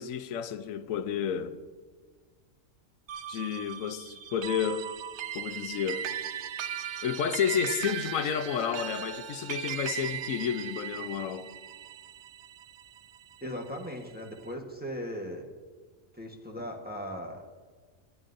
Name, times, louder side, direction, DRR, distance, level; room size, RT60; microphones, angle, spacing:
voice 1, 0.0-1.6 3.3-4.9 5.3-6.1 7.0-11.5, left 8 dB, 85° left, 1.0 m, -31 dB
sound 1, 3.1-13.7, right 9 dB, 65° right, 0.9 m, -38 dB
voice 2, 13.4-15.4 16.1-17.4, equal, 10° right, 1.1 m, -38 dB
22.0 x 9.2 x 2.6 m
omnidirectional pair, 1.4 m